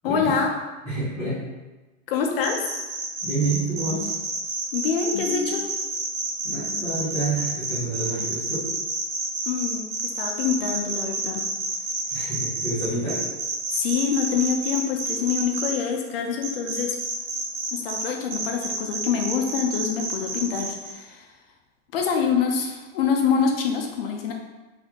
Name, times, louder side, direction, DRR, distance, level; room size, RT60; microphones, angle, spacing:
voice 1, 0.0-0.5 2.1-2.6 4.7-5.7 9.5-11.4 13.7-17.0 17.7-21.3 21.9-24.3, left 6 dB, 50° left, 3 dB, 0.7 m, -25 dB
voice 2, 0.8-1.4 3.2-4.1 6.4-8.7 12.1-13.2, right 2 dB, ahead, -22 dB, 0.3 m, -28 dB
sound 1, 2.4-15.7 16.4-18.0 18.3-20.9, right 3 dB, 65° right, 1.0 m, -29 dB
4.1 x 3.5 x 2.9 m, 1.2 s
supercardioid pair, 170°, 38 cm